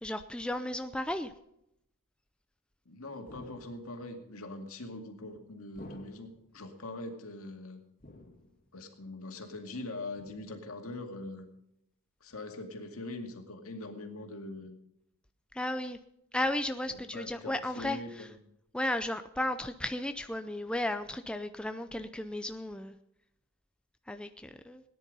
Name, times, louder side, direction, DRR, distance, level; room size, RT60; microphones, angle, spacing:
voice 1, 0.0-1.3 15.5-16.0 16.3-18.3 18.7-23.0 24.1-24.8, left 1 dB, 5° left, 8 dB, 0.4 m, -34 dB
voice 2, 2.9-7.8 8.7-11.5 12.2-14.8 16.9-18.4, left 2 dB, 70° left, 4 dB, 2.2 m, -42 dB
sound 1, 3.3-4.1 5.8-6.5 8.0-8.7 10.1-10.7 12.3-12.4, left 1 dB, 40° left, 1.8 m, -52 dB
17.5 x 10.0 x 5.3 m, 0.81 s
head